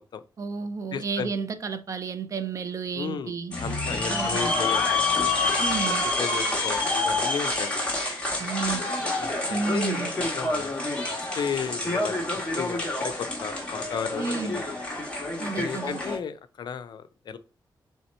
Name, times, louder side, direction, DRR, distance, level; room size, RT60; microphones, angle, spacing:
voice 1, 0.4-3.5 4.1-4.5 5.6-6.0 8.4-8.9 9.5-10.1 14.2-14.6 15.4-16.0, right 5 dB, 40° right, 0.4 m, -31 dB
voice 2, 0.9-1.3 2.9-3.3 3.6-5.0 6.2-7.9 9.2-10.9 11.4-12.2 12.6-14.8 15.5-17.4, left 7 dB, 65° left, 0.4 m, -34 dB
sound 1, 3.5-16.2, left 2 dB, 15° left, 1.1 m, -27 dB
3.3 x 2.8 x 4.1 m
wide cardioid pair, 175°, 8 cm